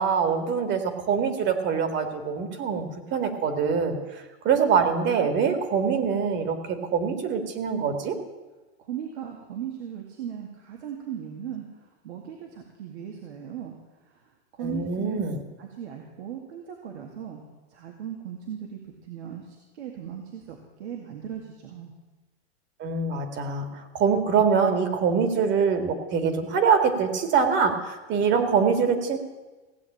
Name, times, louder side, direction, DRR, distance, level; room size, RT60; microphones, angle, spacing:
voice 1, 0.0-4.0 4.4-8.2 14.6-15.4 22.8-23.7 23.9-29.2, right 6 dB, 35° right, 8 dB, 2.1 m, -24 dB
voice 2, 8.8-13.8 14.5-15.2 15.6-17.4 17.7-21.9, right 9 dB, 80° right, 1 dB, 2.3 m, -38 dB
17.0 x 7.9 x 8.6 m, 1.2 s
supercardioid pair, 135°, 33 cm